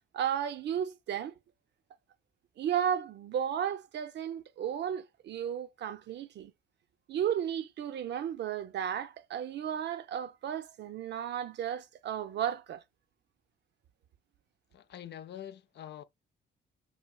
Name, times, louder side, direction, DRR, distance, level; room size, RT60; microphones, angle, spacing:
voice 1, 0.1-1.3 2.6-6.5 7.1-12.8, right 9 dB, 60° right, 0.5 m, -34 dB
voice 2, 14.7-16.0, left 10 dB, 60° left, 0.5 m, -45 dB
5.6 x 2.8 x 2.2 m
cardioid pair, 90°, 20 cm